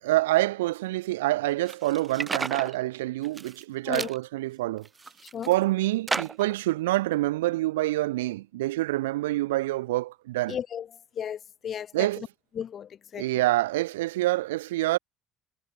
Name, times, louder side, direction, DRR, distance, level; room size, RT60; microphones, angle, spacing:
voice 1, 0.0-4.9 5.5-10.6 11.9-12.3 13.1-15.0, right 17 dB, 80° right, 0.6 m, -26 dB
sound 1, 1.7-2.7 3.2-3.6 3.9-4.2 4.8-5.5 6.1-6.6, right 4 dB, 25° right, 0.5 m, -33 dB
voice 2, 10.5-10.9 11.2-12.1 12.6-13.4, left 9 dB, 50° left, 0.6 m, -34 dB
hypercardioid pair, 55°, 0 cm